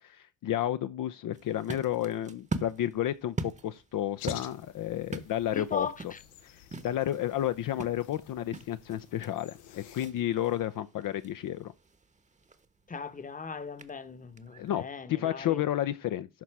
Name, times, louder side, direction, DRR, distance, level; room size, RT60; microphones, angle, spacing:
voice 1, 0.0-6.1 6.4-11.7 14.6-16.3, left 12 dB, 55° left, 0.7 m, -31 dB
sound 1, 1.3-14.9, right 3 dB, 15° right, 1.0 m, -43 dB
sound 2, 4.2-10.1, left 12 dB, 85° left, 1.0 m, -51 dB
voice 2, 5.5-6.2 12.9-15.6, left 5 dB, 20° left, 1.0 m, -38 dB
12.0 x 4.1 x 4.7 m
supercardioid pair, 85°, 40 cm